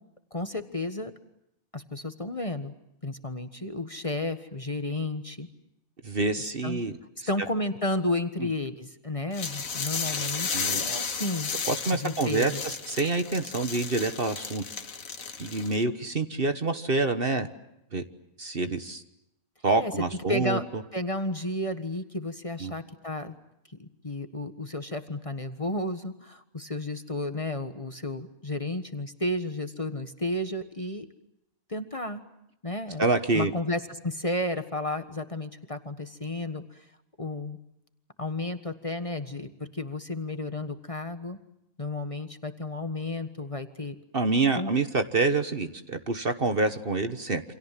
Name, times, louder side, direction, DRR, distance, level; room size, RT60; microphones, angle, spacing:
voice 1, 0.3-1.1 1.7-2.7 3.0-5.5 6.6-6.8 7.3-11.5 11.9-12.6 19.8-19.9 20.3-20.6 20.9-23.4 23.8-31.0 31.7-32.2 32.6-33.0 33.3-36.8 37.2-37.6 38.2-41.4 41.8-43.9 44.5-44.7, left 2 dB, 25° left, 8 dB, 1.5 m, -32 dB
voice 2, 6.0-7.0 8.4-8.5 10.5-10.8 11.7-14.6 15.4-17.5 17.9-18.0 18.4-19.0 19.6-20.6 22.6-22.7 33.0-33.5 44.1-47.4, right 3 dB, 40° right, 9 dB, 1.5 m, -27 dB
sound 1, 9.3-15.8, left 5 dB, 75° left, 2.0 m, -33 dB
29.0 x 26.5 x 7.5 m, 0.83 s
omnidirectional pair, 1.5 m